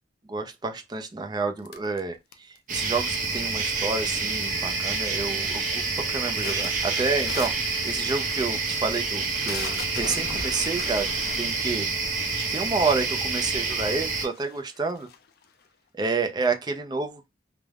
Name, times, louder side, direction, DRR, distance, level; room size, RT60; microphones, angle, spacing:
voice 1, 0.3-5.8 6.1-11.1 11.4-11.9 12.5-15.1 15.9-17.3, right 4 dB, 25° right, 0.4 m, -29 dB
sound 1, 1.7-2.8 3.5-4.1 4.4-4.9 5.2-5.6 6.0-13.0 13.7-13.8 14.1-15.7, left 5 dB, 60° left, 0.4 m, -41 dB
sound 2, 2.7-14.3, right 4 dB, 45° right, 0.8 m, -28 dB
Wind instrument woodwind instrument, 4.5-8.7 11.4-11.5, left 3 dB, 80° left, 1.1 m, -46 dB
3.2 x 2.1 x 2.3 m
head